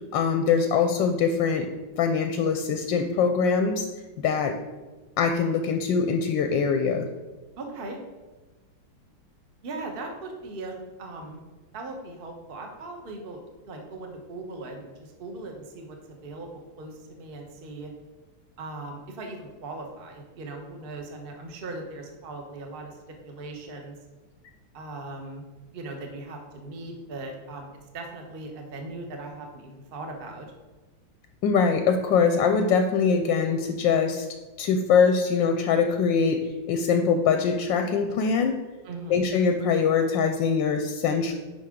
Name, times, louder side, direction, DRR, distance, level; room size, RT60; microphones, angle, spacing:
voice 1, 0.1-1.7 2.0-3.9 4.2-4.6 5.2-7.1 31.4-34.3 34.6-36.4 36.7-38.6 39.1-41.3, left 5 dB, 75° left, 6 dB, 1.2 m, -23 dB
voice 2, 7.6-8.0 9.6-11.4 11.7-16.5 16.8-17.9 18.6-23.0 23.2-24.0 24.7-25.4 25.7-27.7 27.9-30.5 38.8-39.2, right 2 dB, 35° right, 3 dB, 0.9 m, -39 dB
9.3 x 5.6 x 3.7 m, 1.2 s
omnidirectional pair, 2.2 m